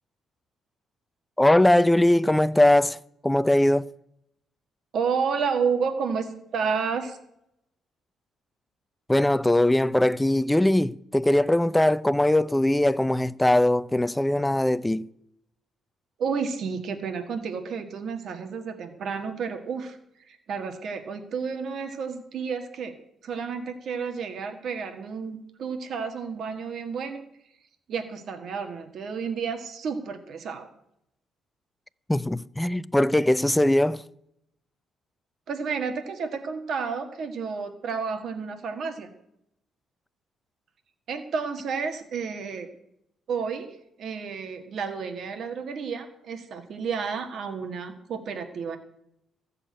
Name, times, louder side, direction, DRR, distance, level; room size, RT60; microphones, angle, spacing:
voice 1, 1.4-3.0 3.2-3.9 9.1-15.1 32.1-34.0, left 1 dB, 10° left, 0.5 m, -21 dB
voice 2, 4.9-6.3 6.5-7.2 16.2-20.0 20.3-23.0 23.2-27.2 27.9-30.7 35.5-39.1 41.1-42.7 43.3-43.7 44.0-48.8, right 5 dB, 65° right, 1.8 m, -31 dB
14.0 x 6.8 x 8.7 m
cardioid pair, 90°, 0 cm